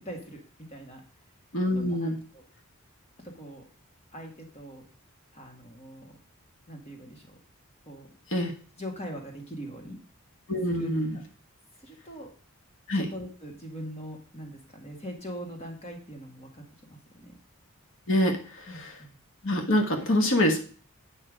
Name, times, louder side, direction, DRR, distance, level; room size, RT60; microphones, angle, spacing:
voice 1, 0.0-0.4 0.7-1.0 1.7-2.4 3.3-3.6 4.1-4.8 5.3-6.1 6.7-7.4 7.9-8.1 8.8-10.0 10.7-10.9 11.8-12.3 12.9-17.4 18.7-19.2, equal, 30° left, 2 dB, 2.1 m, -42 dB
voice 2, 1.5-2.2 8.3-8.5 10.5-11.2 12.9-13.1 18.1-18.9 19.4-20.6, left 1 dB, 60° left, 4 dB, 1.4 m, -25 dB
9.1 x 5.5 x 5.1 m, 0.41 s
head